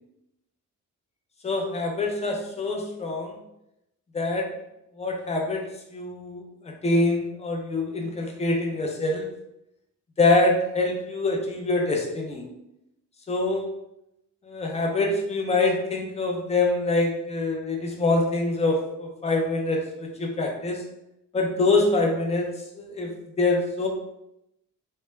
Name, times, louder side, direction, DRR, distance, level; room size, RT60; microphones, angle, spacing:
voice 1, 1.4-3.4 4.1-4.5 5.0-9.3 10.2-12.4 13.3-13.7 14.4-20.8 21.3-22.5 22.7-23.9, left 2 dB, 20° left, 1 dB, 0.5 m, -25 dB
2.2 x 2.2 x 3.1 m, 0.85 s
cardioid pair, 110°, 32 cm